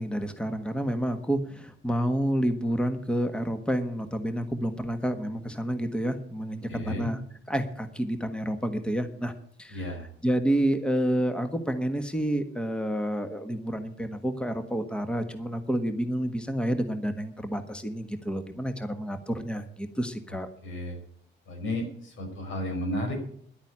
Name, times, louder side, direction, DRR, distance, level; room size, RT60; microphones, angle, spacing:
voice 1, 0.0-7.2 7.5-9.3 9.6-9.9 10.2-20.5, equal, 5° left, 7 dB, 1.4 m, -29 dB
voice 2, 6.7-7.1 9.7-10.1 20.3-21.0 21.5-23.2, left 1 dB, 80° left, 3 dB, 5.6 m, -33 dB
11.0 x 8.8 x 8.8 m, 0.62 s
cardioid pair, 90°, 20 cm